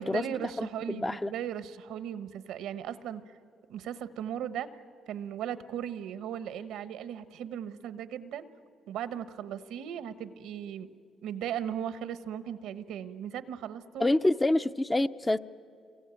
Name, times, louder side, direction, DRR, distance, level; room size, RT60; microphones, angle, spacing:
voice 1, 0.0-3.2 3.7-4.7 5.1-8.5 8.9-10.9 11.2-14.1, right 9 dB, 90° right, 14 dB, 1.0 m, -37 dB
voice 2, 0.6-1.3 14.0-15.4, left 2 dB, 15° left, 11 dB, 0.6 m, -27 dB
27.0 x 23.0 x 8.9 m, 2.4 s
cardioid pair, 90°, 0 cm